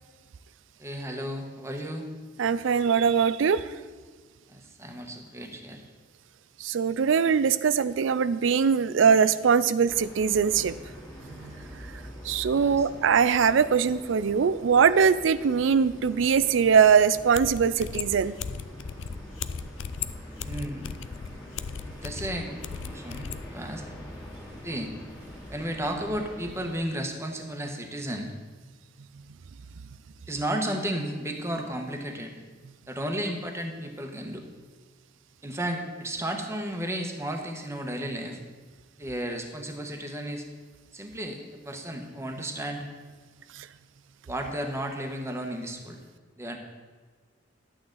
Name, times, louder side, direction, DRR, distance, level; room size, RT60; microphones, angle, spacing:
voice 1, 0.8-2.1 4.5-5.8 12.5-12.9 20.4-21.0 21.9-23.8 24.6-24.9 25.5-28.3 30.3-32.3 32.9-34.5 35.4-38.4 39.0-40.5 40.9-42.8 44.3-46.0 46.4-46.6, right 1 dB, 15° right, 3 dB, 1.0 m, -33 dB
voice 2, 2.4-3.6 6.6-10.7 11.4-11.5 12.2-18.3, right 6 dB, 85° right, 15 dB, 0.4 m, -22 dB
sound 1, 9.9-26.7, equal, 20° left, 2.1 m, -44 dB
sound 2, 17.1-17.2 17.3-23.4, left 7 dB, 75° left, 0.4 m, -36 dB
11.0 x 8.7 x 3.9 m, 1.4 s
head